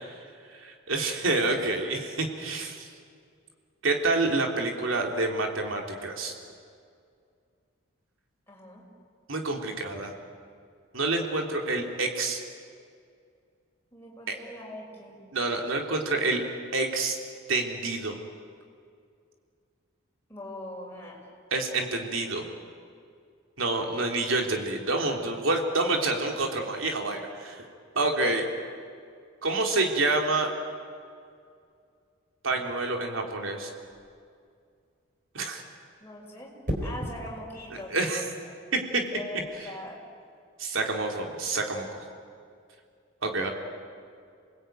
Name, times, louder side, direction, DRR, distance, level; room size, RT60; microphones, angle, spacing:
voice 1, 0.6-2.9 3.8-6.3 9.3-10.1 10.9-12.4 15.3-16.4 16.7-17.2 17.5-18.2 21.5-22.5 23.6-27.6 27.9-28.4 29.4-30.5 32.4-33.7 35.3-35.6 37.9-38.2 40.6-42.0 43.2-43.5, right 2 dB, 75° right, 2 dB, 3.3 m, -28 dB
voice 2, 8.5-8.8 13.9-15.2 20.3-21.3 36.0-36.5 36.8-38.5 39.1-40.0, left 1 dB, 10° left, -3 dB, 6.0 m, -41 dB
sound 1, 33.8-34.2 36.6-37.2 39.2-39.4, equal, 40° right, 4.1 m, -33 dB
28.0 x 20.0 x 9.3 m, 2.3 s
head